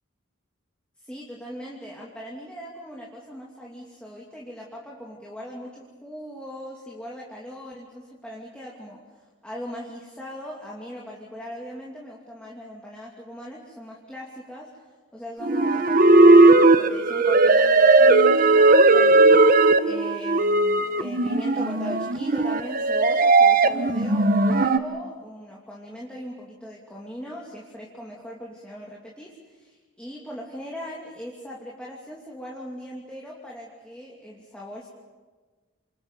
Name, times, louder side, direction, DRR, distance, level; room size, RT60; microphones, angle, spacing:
voice 1, 1.0-9.0 9.4-14.8 15.1-19.4 19.8-34.9, equal, 5° left, -4 dB, 2.7 m, -39 dB
sound 1, 15.4-24.8, right 2 dB, 40° right, 0.9 m, -17 dB
29.5 x 27.0 x 5.5 m, 1.3 s
head